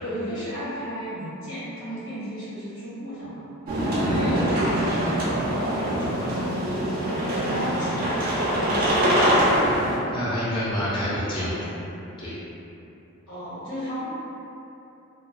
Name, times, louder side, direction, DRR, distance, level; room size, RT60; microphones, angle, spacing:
voice 1, 0.0-3.4 3.7-9.5 13.3-14.0, equal, 80° left, -10 dB, 1.0 m, -34 dB
sound 1, 3.7-10.0, equal, 45° right, 0.4 m, -23 dB
voice 2, 4.0-4.3 10.1-11.7 12.2-12.3, equal, 20° left, -10 dB, 0.4 m, -28 dB
2.3 x 2.2 x 2.4 m, 2.9 s
head